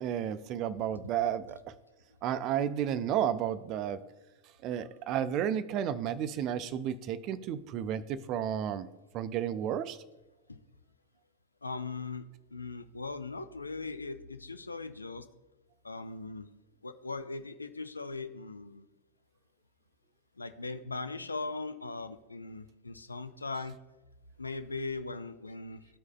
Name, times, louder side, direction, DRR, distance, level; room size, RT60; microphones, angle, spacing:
voice 1, 0.0-1.7 2.2-4.1 4.6-8.9 9.1-10.0, right 9 dB, 40° right, 14 dB, 0.4 m, -32 dB
voice 2, 11.6-15.3 15.8-16.5 16.8-18.9 20.4-23.8 24.4-26.0, left 3 dB, 80° left, 10 dB, 0.4 m, -39 dB
13.5 x 4.7 x 2.2 m, 1.1 s
figure-of-eight pair, 90°, 0 cm